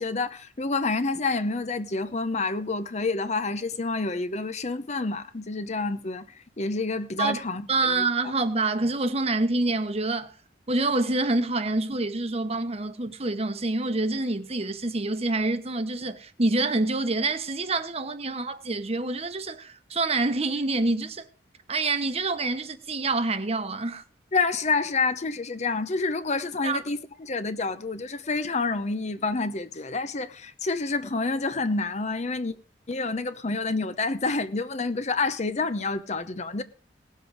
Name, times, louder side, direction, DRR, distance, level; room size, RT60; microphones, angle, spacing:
voice 1, 0.0-6.3 6.6-8.3 24.3-32.5 32.9-36.6, left 3 dB, 40° left, 0.8 m, -28 dB
voice 2, 7.7-10.3 10.7-21.2 21.7-24.0 26.6-26.8, right 2 dB, 35° right, 1.1 m, -26 dB
18.5 x 7.6 x 4.9 m
head